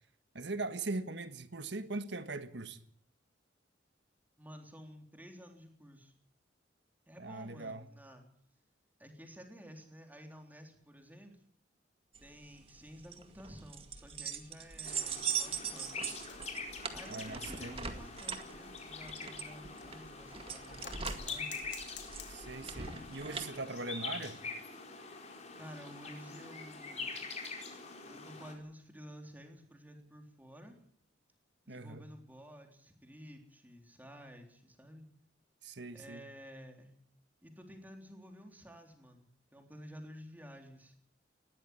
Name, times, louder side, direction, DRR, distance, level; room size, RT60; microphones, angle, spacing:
voice 1, 0.3-2.8 7.2-7.8 17.1-17.9 22.3-24.4 31.7-32.0 35.6-36.2, right 3 dB, 60° right, 1.5 m, -40 dB
voice 2, 4.4-6.1 7.1-8.2 9.0-11.4 12.2-16.1 16.9-21.5 25.6-27.2 28.0-30.7 31.7-35.0 35.9-36.9 37.4-41.0, equal, 10° right, 3.7 m, -52 dB
sound 1, 12.1-23.5, right 6 dB, 30° right, 2.1 m, -41 dB
sound 2, 14.8-28.5, left 4 dB, 35° left, 4.6 m, -45 dB
sound 3, 15.2-20.0 20.8-22.7 23.0-23.1 23.5-23.6 23.9-24.0 24.6-27.7 28.1-28.4 29.5-29.6, left 10 dB, 65° left, 3.0 m, -55 dB
19.5 x 14.5 x 9.8 m
head